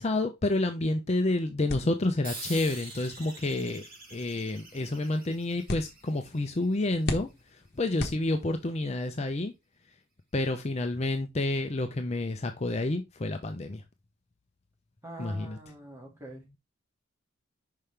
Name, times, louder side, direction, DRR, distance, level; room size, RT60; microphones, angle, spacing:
voice 1, 0.0-9.5 10.3-13.8 15.2-15.6, left 2 dB, 30° left, 0.5 m, -29 dB
sound 1, 1.7-8.8, left 2 dB, 50° left, 1.1 m, -41 dB
sound 2, 2.2-7.2, right 2 dB, 45° right, 2.8 m, -45 dB
voice 2, 15.0-16.5, right 1 dB, 15° right, 1.9 m, -44 dB
5.6 x 5.4 x 3.3 m
head